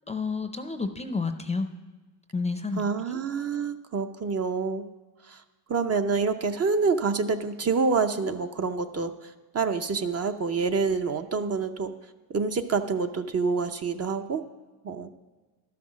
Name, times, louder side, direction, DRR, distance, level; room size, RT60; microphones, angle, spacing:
voice 1, 0.1-1.7 2.3-3.2, left 4 dB, 15° left, 8 dB, 0.5 m, -30 dB
voice 2, 2.8-4.8 5.2-5.4 5.7-11.9 12.3-14.4 14.8-15.1, right 4 dB, 35° right, 7 dB, 0.6 m, -27 dB
12.0 x 5.9 x 6.2 m, 1.3 s
cardioid pair, 105°, 41 cm